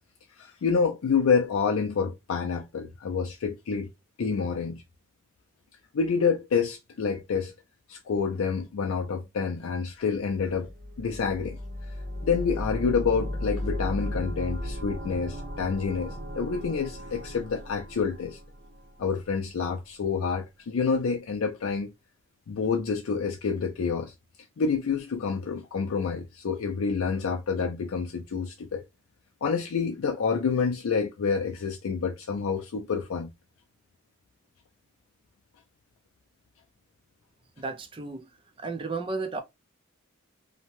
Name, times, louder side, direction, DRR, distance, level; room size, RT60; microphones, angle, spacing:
voice 1, 0.4-3.9 4.2-4.8 5.9-7.5 7.9-10.7 11.0-11.6 12.2-18.4 19.0-21.9 22.5-24.1 24.6-28.8 29.4-33.3, left 5 dB, 90° left, 0.4 m, -28 dB
sound 1, 10.3-19.2, left 1 dB, 50° right, 0.8 m, -35 dB
voice 2, 37.6-38.2 38.6-39.4, right 3 dB, 25° right, 0.4 m, -33 dB
2.7 x 2.1 x 3.0 m
head